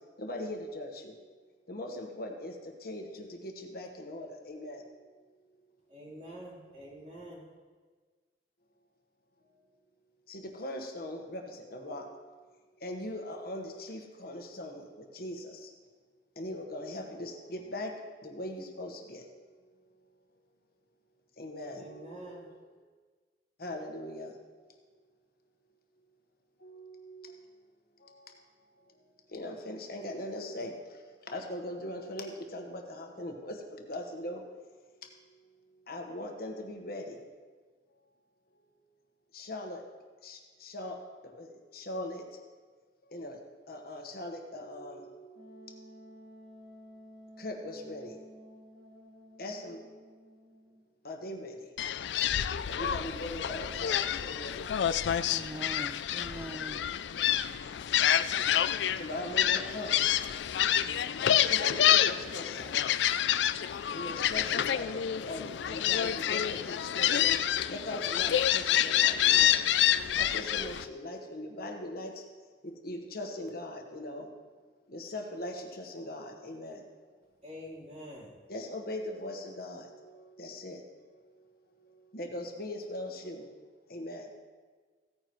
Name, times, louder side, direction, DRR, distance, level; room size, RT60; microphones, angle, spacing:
voice 1, 0.2-1.1 1.7-4.8 10.3-12.1 12.8-15.7 16.4-17.9 18.2-19.2 21.4-22.5 23.6-24.3 26.6-27.3 29.3-30.7 31.3-34.4 35.9-37.2 39.3-39.8 40.2-41.0 41.2-41.5 41.7-42.2 43.1-43.4 43.7-45.7 47.4-48.1 49.4-49.8 51.0-51.5 52.4-54.6 59.0-60.0 61.4-62.7 63.9-67.4 67.7-69.6 70.2-72.1 72.6-74.3 74.9-76.8 78.5-80.8 82.1-83.5 83.9-84.3, left 1 dB, 60° left, 3 dB, 1.4 m, -40 dB
voice 2, 5.9-7.4 21.8-22.5 77.4-78.3, equal, 40° right, -5 dB, 3.6 m, -46 dB
Wind instrument woodwind instrument, 45.3-50.9, equal, 70° right, 2.4 m, -53 dB
Gull seagull, 51.8-70.8, left 10 dB, 80° left, 0.4 m, -28 dB
voice 3, 55.3-56.9, right 2 dB, 15° right, 12 dB, 0.3 m, -42 dB
16.0 x 9.4 x 3.1 m, 1.5 s
head